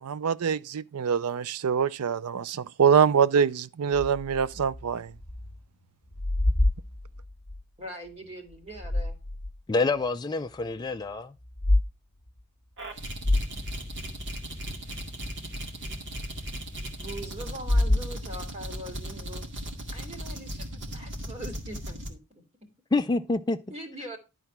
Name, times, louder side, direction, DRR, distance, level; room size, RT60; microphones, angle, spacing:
voice 1, 0.0-5.1, right 7 dB, 80° right, 0.5 m, -24 dB
sound 1, 3.9-5.6 5.9-7.6 8.5-9.6 10.1-10.2 11.4-11.9 12.3-12.4 12.8-12.9 13.2-14.5 17.5-18.6, left 1 dB, 40° left, 1.4 m, -28 dB
voice 2, 7.8-9.2 17.0-19.6 19.9-22.4 23.7-24.2, right 1 dB, 25° right, 2.2 m, -42 dB
voice 3, 9.7-11.4 22.9-23.6, left 3 dB, 20° left, 0.4 m, -27 dB
sound 2, 12.8-22.1, equal, 55° right, 2.0 m, -37 dB
11.0 x 4.1 x 5.9 m
head